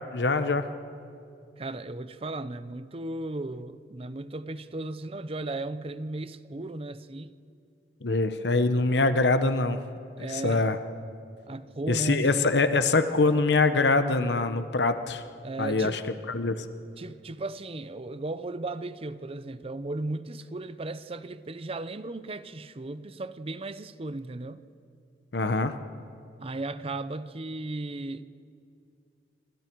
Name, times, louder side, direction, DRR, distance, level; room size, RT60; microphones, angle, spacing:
voice 1, 0.1-0.7 8.0-9.8 10.2-10.8 11.9-15.2 15.6-16.0 16.3-16.6 25.3-25.7, left 3 dB, 75° left, 1.0 m, -24 dB
voice 2, 1.6-7.3 10.2-10.7 11.5-12.6 15.4-16.0 17.0-24.6 26.4-28.2, right 2 dB, 35° right, 0.7 m, -36 dB
27.5 x 24.5 x 4.7 m
head